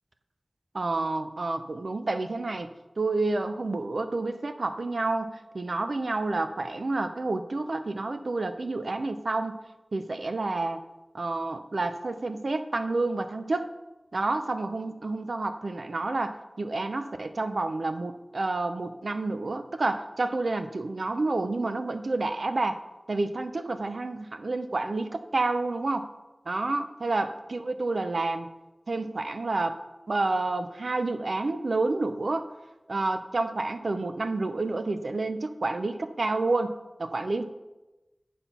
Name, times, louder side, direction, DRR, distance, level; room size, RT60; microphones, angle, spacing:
voice 1, 0.7-2.7 3.0-9.7 9.9-10.8 11.1-13.7 14.1-22.8 23.1-26.1 26.5-28.5 28.9-29.8 30.1-32.5 32.9-37.4, right 2 dB, 85° right, 8 dB, 0.6 m, -29 dB
10.0 x 4.3 x 5.6 m, 1.0 s
wide cardioid pair, 45°, 0 cm